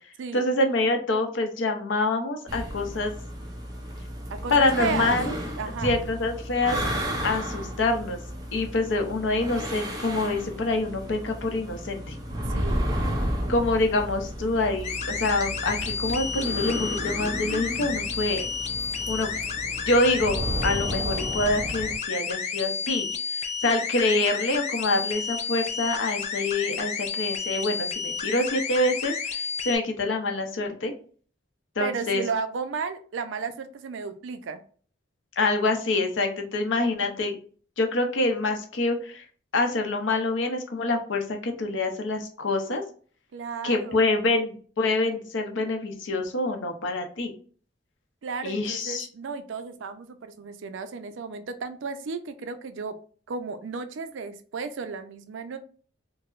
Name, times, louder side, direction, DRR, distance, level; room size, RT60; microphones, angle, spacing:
voice 1, 0.3-3.1 4.5-5.3 5.8-6.8 7.2-8.2 8.5-12.2 13.5-18.5 19.1-19.3 19.9-20.4 20.6-23.1 23.6-30.9 31.8-32.2 35.4-37.4 37.8-39.2 39.5-42.8 43.6-47.3 48.4-49.1, left 2 dB, 75° left, 4 dB, 0.6 m, -26 dB
sound 1, 2.5-22.0, equal, 20° right, 0.5 m, -33 dB
voice 2, 4.3-5.2 5.6-6.0 12.5-12.9 31.8-34.6 43.3-44.1 48.2-53.0 53.3-55.6, right 5 dB, 80° right, 10 dB, 0.4 m, -33 dB
sound 2, 14.8-29.8, left 6 dB, 35° left, 0.4 m, -31 dB
4.6 x 2.0 x 2.4 m, 0.43 s
head